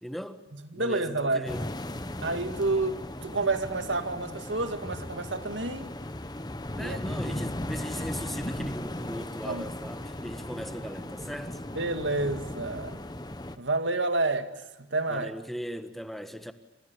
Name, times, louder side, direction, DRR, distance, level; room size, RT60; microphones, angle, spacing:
voice 1, 0.0-0.4 0.7-1.7 6.7-11.6 15.1-16.5, equal, ahead, 1.5 m, -38 dB
voice 2, 0.7-1.5 2.2-5.9 6.8-7.0 9.5-9.6 11.8-13.0 13.6-15.3, right 2 dB, 85° right, 2.3 m, -29 dB
sound 1, 1.5-13.6, left 1 dB, 20° left, 1.2 m, -37 dB
30.0 x 27.5 x 7.1 m
head